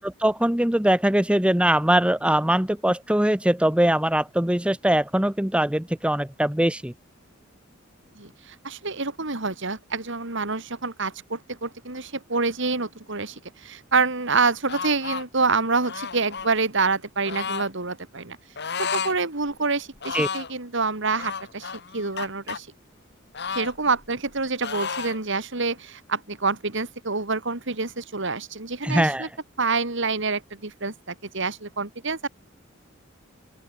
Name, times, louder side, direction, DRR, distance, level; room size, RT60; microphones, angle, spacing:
voice 1, 0.0-6.9 20.1-20.3 28.8-29.3, right 1 dB, 5° right, 0.9 m, -22 dB
voice 2, 8.2-18.4 18.8-22.7 23.5-29.3 29.6-32.3, right 4 dB, 65° right, 2.8 m, -27 dB
sound 1, 14.7-15.2 15.8-16.5 17.3-17.7 18.6-19.2 19.5-19.6 20.0-20.5 21.2-22.6 23.3-24.3 24.6-25.2, left 6 dB, 55° left, 2.3 m, -32 dB
open air
head